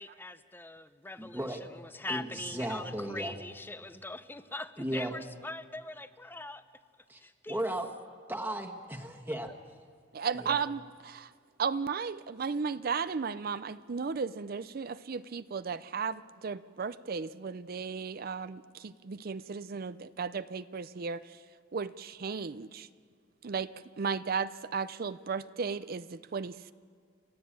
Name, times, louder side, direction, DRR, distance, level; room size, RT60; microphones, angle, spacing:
voice 1, 0.0-6.6 7.2-7.6 9.3-9.5, left 2 dB, 10° left, 12 dB, 0.7 m, -42 dB
voice 2, 1.2-1.6 2.1-3.3 4.8-5.1 7.1-7.2 7.5-7.9 8.3-9.5 10.3-10.6, right 1 dB, 10° right, 3 dB, 1.5 m, -35 dB
voice 3, 10.1-11.3 11.6-21.4 21.7-22.9 23.4-23.7 24.0-26.7, right 5 dB, 50° right, 13 dB, 0.5 m, -35 dB
29.5 x 13.0 x 8.8 m, 2.1 s
head